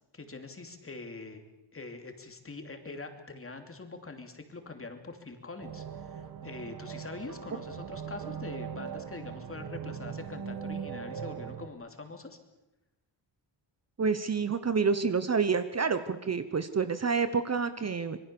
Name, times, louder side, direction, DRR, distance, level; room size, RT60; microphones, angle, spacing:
voice 1, 0.1-1.4 1.7-12.4, left 3 dB, 30° left, 6 dB, 2.8 m, -44 dB
sound 1, 5.6-11.7, right 7 dB, 50° right, 1.8 m, -40 dB
voice 2, 14.0-18.2, right 5 dB, 35° right, 11 dB, 1.0 m, -28 dB
26.0 x 22.5 x 6.9 m, 0.96 s
wide cardioid pair, 145°, 46 cm